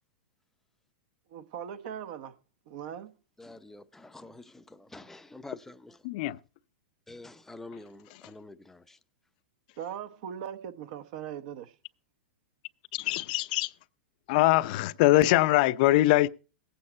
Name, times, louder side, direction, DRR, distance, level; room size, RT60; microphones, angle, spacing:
voice 1, 1.3-2.4 2.7-3.1 9.8-11.7, right 9 dB, 55° right, 1.1 m, -39 dB
voice 2, 3.4-6.1 7.1-9.0, left 2 dB, 5° left, 0.6 m, -47 dB
voice 3, 6.0-6.4 12.9-13.7 14.3-16.3, left 16 dB, 50° left, 0.6 m, -23 dB
17.5 x 8.6 x 4.3 m
hypercardioid pair, 125°, 6 cm